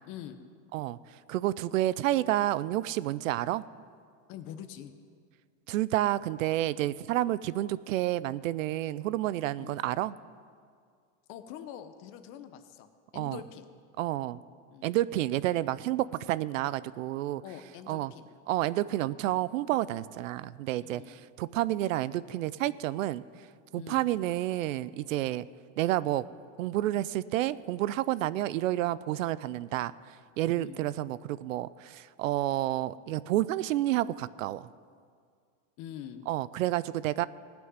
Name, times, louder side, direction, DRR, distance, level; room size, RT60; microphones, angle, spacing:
voice 1, 0.0-0.4 4.3-4.9 9.6-9.8 11.3-13.7 14.7-14.9 17.4-18.3 20.8-21.2 23.7-24.0 30.5-30.8 35.8-36.2, left 10 dB, 35° left, 9 dB, 0.8 m, -45 dB
voice 2, 1.3-3.7 5.7-10.2 13.1-13.4 14.0-14.4 14.8-17.4 17.9-18.1 18.5-23.2 23.7-25.4 25.8-26.2 26.6-34.7 36.3-37.3, right 14 dB, 90° right, 18 dB, 0.6 m, -30 dB
16.5 x 6.2 x 9.4 m, 2.1 s
supercardioid pair, 160°, 38 cm